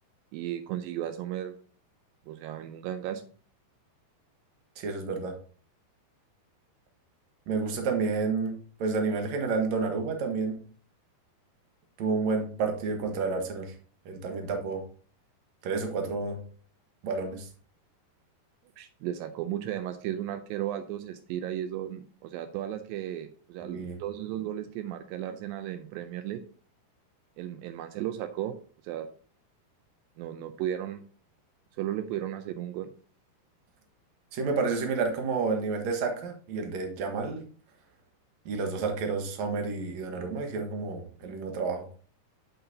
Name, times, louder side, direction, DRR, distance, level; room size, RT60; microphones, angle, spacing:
voice 1, 0.3-1.6 2.3-3.2 18.8-26.4 27.4-28.5 28.8-29.1 30.2-31.0 31.8-32.9, right 11 dB, 90° right, 9 dB, 2.0 m, -35 dB
voice 2, 4.8-5.4 7.5-10.6 12.0-13.7 14.1-14.9 15.6-16.4 17.0-17.5 23.6-24.0 34.3-37.4 38.5-41.9, right 4 dB, 60° right, 4 dB, 2.1 m, -30 dB
8.0 x 7.9 x 2.8 m, 0.42 s
omnidirectional pair, 4.7 m